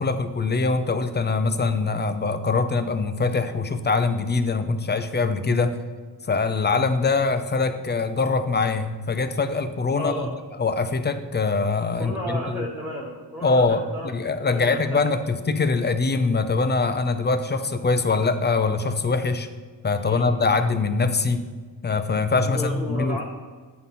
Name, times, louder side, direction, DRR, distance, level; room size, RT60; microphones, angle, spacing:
voice 1, 0.0-5.8 6.3-10.3 10.6-12.7 13.4-19.5 19.8-21.4 21.8-23.2, left 4 dB, 25° left, 9 dB, 0.3 m, -23 dB
voice 2, 10.0-10.3 12.0-14.1 14.5-15.0 20.0-20.3 22.4-23.2, equal, 5° right, -5 dB, 0.7 m, -33 dB
9.5 x 3.8 x 5.7 m, 1.5 s
wide cardioid pair, 180°, 43 cm